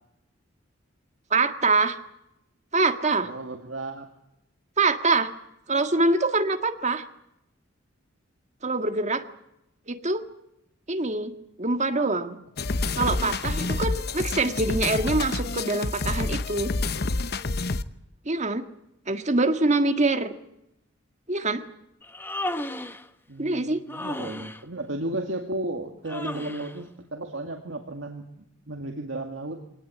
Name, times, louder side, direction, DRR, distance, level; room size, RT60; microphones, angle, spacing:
voice 1, 1.3-2.0 2.7-3.3 4.8-5.3 5.7-7.0 8.6-9.2 9.9-10.2 10.9-11.3 11.6-12.4 13.0-16.7 18.2-18.6 19.1-20.3 21.3-21.6 23.4-23.8, right 3 dB, 35° right, 7 dB, 1.7 m, -24 dB
voice 2, 3.3-4.1 23.3-28.3 28.7-29.6, right 1 dB, 65° right, 3 dB, 2.1 m, -34 dB
sound 1, 12.6-17.8, left 3 dB, 50° left, 0.9 m, -28 dB
Human voice, 22.0-23.1 23.9-24.6 26.1-26.8, left 1 dB, 10° left, 1.0 m, -34 dB
24.5 x 18.5 x 8.5 m, 0.82 s
head